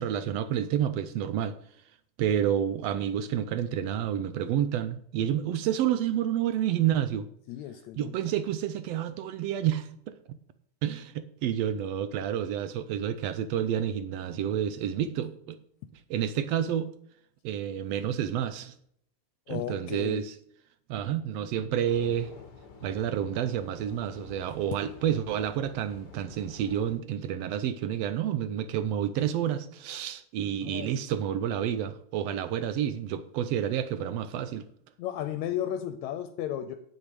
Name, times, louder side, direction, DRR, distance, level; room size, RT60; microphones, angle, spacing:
voice 1, 0.0-1.5 2.2-7.3 8.0-10.4 10.8-15.6 16.1-16.9 17.4-18.7 19.5-20.3 20.9-22.3 22.8-34.7, right 10 dB, 75° right, 12 dB, 1.5 m, -29 dB
voice 2, 7.5-8.1 19.5-20.2 30.6-31.0 35.0-36.8, left 11 dB, 80° left, 9 dB, 1.9 m, -34 dB
sound 1, 21.9-27.0, left 5 dB, 50° left, 1.4 m, -49 dB
9.1 x 8.3 x 4.9 m, 0.67 s
omnidirectional pair, 3.4 m